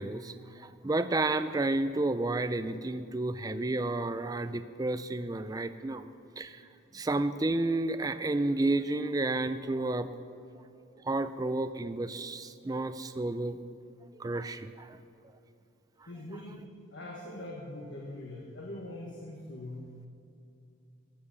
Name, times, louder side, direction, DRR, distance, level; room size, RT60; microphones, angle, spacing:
voice 1, 0.0-6.1 6.4-6.6 6.9-10.1 11.0-13.6 14.1-15.0, right 2 dB, 20° right, 11 dB, 0.4 m, -31 dB
voice 2, 16.1-19.9, left 1 dB, 70° left, -2 dB, 1.5 m, -43 dB
14.5 x 7.5 x 7.2 m, 2.6 s
head